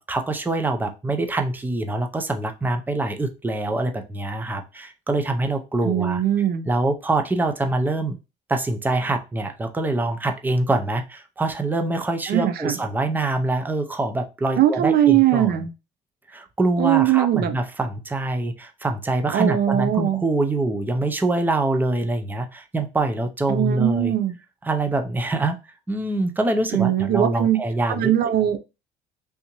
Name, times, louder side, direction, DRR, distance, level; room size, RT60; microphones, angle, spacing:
voice 1, 0.0-6.2 6.7-8.2 8.5-15.6 16.3-24.1 24.7-25.6 25.9-28.1, right 2 dB, 10° right, 6 dB, 0.6 m, -24 dB
voice 2, 5.8-6.7 12.3-12.8 14.6-15.7 16.8-17.5 19.3-20.2 23.5-24.4 26.7-27.6 27.9-28.6, right 11 dB, 60° right, 10 dB, 0.5 m, -20 dB
3.5 x 2.7 x 2.9 m, 0.27 s
cardioid pair, 100°, 18 cm